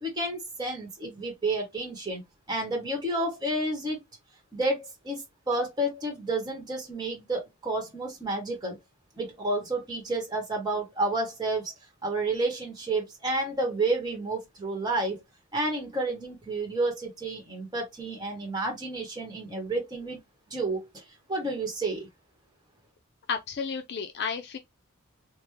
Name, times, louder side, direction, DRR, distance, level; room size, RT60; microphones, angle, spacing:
voice 1, 0.0-2.2 2.5-4.0 4.5-8.8 9.2-11.7 12.0-15.2 15.5-20.2 20.5-20.9 21.3-22.1, right 2 dB, 20° right, 1.1 m, -30 dB
voice 2, 23.3-24.6, left 6 dB, 50° left, 0.4 m, -32 dB
3.4 x 2.1 x 3.1 m
head